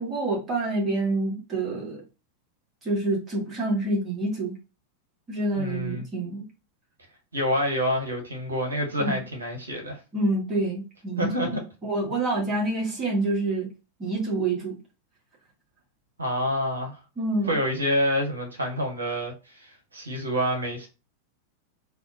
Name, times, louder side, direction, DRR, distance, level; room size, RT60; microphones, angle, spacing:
voice 1, 0.0-2.0 2.8-4.5 5.3-6.4 9.0-9.1 10.1-11.3 11.8-13.7 14.0-14.8 17.2-17.5, right 2 dB, 25° right, 1.7 m, -27 dB
voice 2, 5.6-6.1 7.3-10.0 11.2-11.6 16.2-17.0 17.5-20.9, equal, 75° right, 1.0 m, -27 dB
3.5 x 2.4 x 2.7 m
figure-of-eight pair, 90°, 0 cm